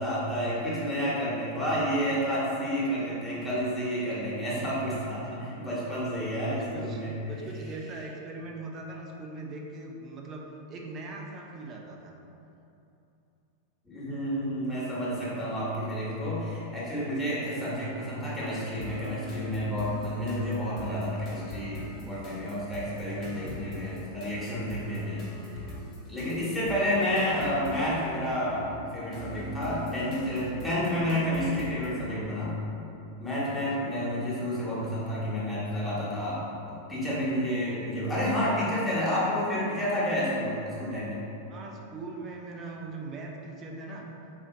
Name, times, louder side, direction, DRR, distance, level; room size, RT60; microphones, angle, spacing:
voice 1, 0.0-7.1 13.8-25.5 26.1-32.5 33.2-41.3, equal, 5° left, -10 dB, 1.3 m, -30 dB
voice 2, 6.2-10.4 10.7-12.1 33.5-33.9 41.5-44.1, right 3 dB, 30° right, 0 dB, 0.5 m, -41 dB
sound 1, 18.8-31.9, left 1 dB, 35° left, 0.9 m, -42 dB
4.0 x 2.7 x 3.8 m, 2.8 s
figure-of-eight pair, 90°, 0 cm